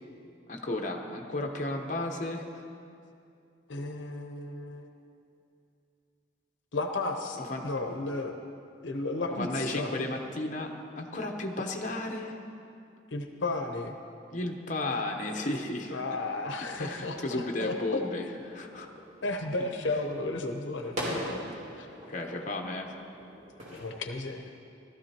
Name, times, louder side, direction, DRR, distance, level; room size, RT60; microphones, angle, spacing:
voice 1, 0.5-2.6 7.4-7.6 9.4-12.3 14.3-16.0 16.8-18.9 22.1-22.9, left 2 dB, 40° left, 2 dB, 1.0 m, -34 dB
voice 2, 3.7-4.9 6.7-8.4 8.8-9.9 13.1-13.9 15.9-18.0 19.2-21.9 23.7-24.7, left 2 dB, 75° left, 4 dB, 0.9 m, -34 dB
sound 1, 16.7-23.8, equal, 40° right, 3.4 m, -42 dB
17.5 x 13.0 x 2.9 m, 2.5 s
head